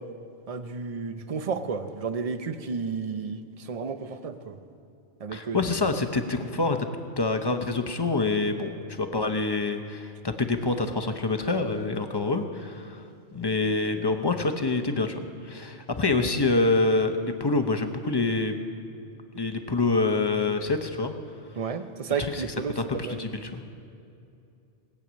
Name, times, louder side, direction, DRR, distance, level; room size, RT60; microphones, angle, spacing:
voice 1, 0.5-4.6 5.2-5.6 21.6-22.8 23.0-23.2, right 5 dB, 40° right, 9 dB, 0.7 m, -32 dB
voice 2, 5.3-6.8 7.2-13.0 13.3-18.6 19.3-21.1 22.2-22.5 22.8-23.6, left 3 dB, 25° left, 6 dB, 0.7 m, -26 dB
19.5 x 8.7 x 6.2 m, 2.7 s
omnidirectional pair, 1.2 m